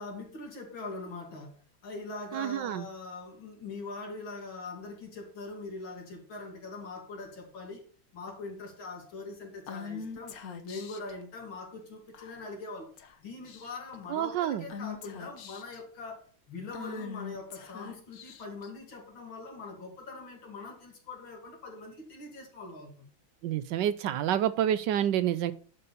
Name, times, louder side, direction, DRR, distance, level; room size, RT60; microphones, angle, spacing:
voice 1, 0.0-7.8 8.1-12.9 13.2-23.1, left 3 dB, 85° left, 3.2 m, -42 dB
voice 2, 2.3-2.8 14.1-14.7 23.4-25.5, right 11 dB, 75° right, 1.2 m, -28 dB
Female speech woman speaking / Whispering, 9.7-11.1 12.1-12.6 13.0-13.1 13.4-14.0 14.7-15.8 16.7-18.7, left 6 dB, 55° left, 1.3 m, -42 dB
11.0 x 4.1 x 6.8 m
omnidirectional pair, 2.1 m